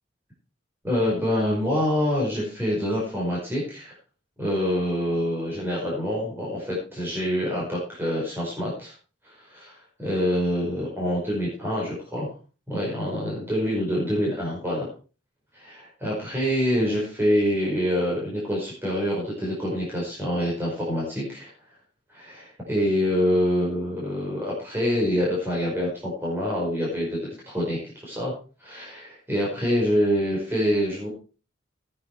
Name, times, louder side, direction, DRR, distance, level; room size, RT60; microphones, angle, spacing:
voice 1, 0.8-3.9 4.4-8.9 9.2-12.3 12.7-14.9 15.5-21.5 22.1-28.3 28.6-31.1, equal, 10° right, -5 dB, 5.1 m, -26 dB
14.5 x 9.6 x 4.6 m, 0.36 s
head